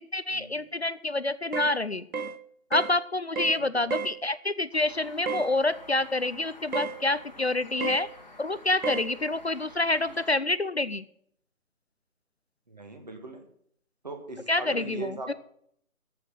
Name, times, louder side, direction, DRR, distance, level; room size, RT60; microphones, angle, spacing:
voice 1, 0.1-2.0 2.7-8.1 8.4-11.0 14.5-15.3, left 2 dB, 50° left, 15 dB, 0.5 m, -27 dB
sound 1, 1.5-1.8 2.1-2.4 2.7-3.0 3.4-3.6 3.9-4.2 5.3-5.5 6.7-7.0 7.8-8.1 8.8-9.1, right 5 dB, 90° right, 1.1 m, -32 dB
voice 2, 3.6-3.9 12.7-13.4 14.0-15.3, right 2 dB, 30° right, 5 dB, 1.6 m, -40 dB
sound 2, 4.7-10.3, left 2 dB, 30° left, 1.4 m, -50 dB
14.0 x 5.9 x 7.8 m, 0.66 s
figure-of-eight pair, 175°, 42 cm